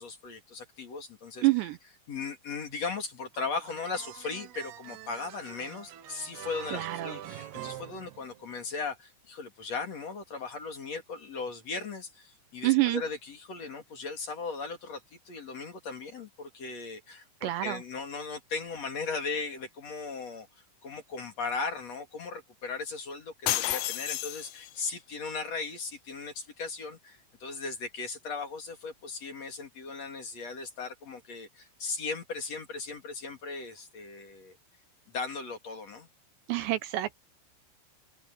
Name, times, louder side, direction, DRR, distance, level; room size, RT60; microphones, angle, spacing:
voice 1, 0.0-1.5 2.1-20.5 20.8-34.6 35.1-36.1, left 4 dB, 40° left, 2.9 m, -37 dB
voice 2, 1.4-1.8 6.7-7.2 12.6-13.0 17.4-17.8 36.5-37.2, right 18 dB, 80° right, 2.6 m, -27 dB
sound 1, 3.3-8.7, right 11 dB, 65° right, 3.0 m, -44 dB
sound 2, 23.5-24.9, left 14 dB, 80° left, 3.9 m, -31 dB
omnidirectional pair, 5.9 m